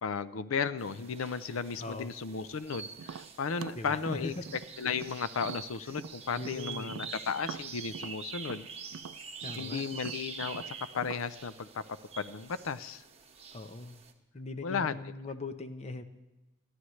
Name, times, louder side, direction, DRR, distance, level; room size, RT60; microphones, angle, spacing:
voice 1, 0.0-4.3 4.8-8.7 9.6-11.8 12.2-13.0 14.6-15.0, left 6 dB, 90° left, 14 dB, 0.5 m, -34 dB
sound 1, 0.8-14.1, right 6 dB, 30° right, 1.4 m, -46 dB
voice 2, 1.8-2.1 3.8-4.4 6.3-7.1 9.4-9.9 13.5-14.0 14.3-16.0, left 2 dB, 35° left, 9 dB, 0.8 m, -40 dB
Tap, 3.0-6.6 6.9-11.3, right 6 dB, 90° right, 0.4 m, -45 dB
29.5 x 11.5 x 3.2 m, 1.1 s
head